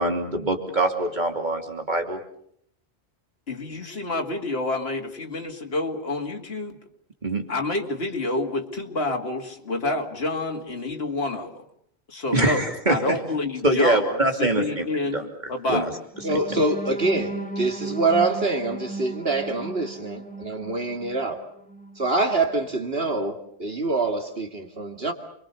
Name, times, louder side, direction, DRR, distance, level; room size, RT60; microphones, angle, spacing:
voice 1, 0.0-2.2 7.2-7.5 12.3-13.2 13.6-14.9 15.1-15.2 15.7-15.9, right 2 dB, 45° right, 4 dB, 3.0 m, -23 dB
voice 2, 3.5-6.8 7.5-11.6 12.1-15.9, left 2 dB, 70° left, 2 dB, 2.6 m, -28 dB
sound 1, 16.1-22.1 22.6-22.7 23.1-23.3, right 2 dB, 10° left, 1.7 m, -36 dB
voice 3, 16.2-21.4 22.0-25.1, right 2 dB, 65° right, 5 dB, 2.5 m, -25 dB
29.0 x 23.0 x 6.8 m, 0.67 s
omnidirectional pair, 1.1 m